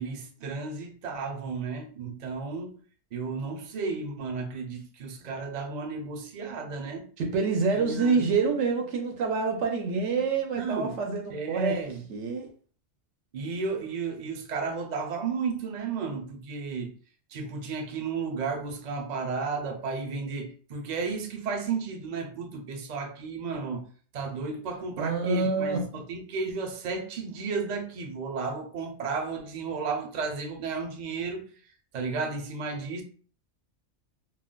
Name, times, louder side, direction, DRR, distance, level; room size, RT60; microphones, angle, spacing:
voice 1, 0.0-2.8 3.1-7.1 7.8-8.3 10.6-11.0 11.3-12.0 13.3-16.9 17.3-23.9 24.1-31.4 31.9-33.0, right 4 dB, 50° right, 0.5 m, -33 dB
voice 2, 7.2-11.7 12.1-12.5 25.0-25.9, right 4 dB, 85° right, 0.9 m, -27 dB
2.3 x 2.1 x 3.6 m
omnidirectional pair, 1.2 m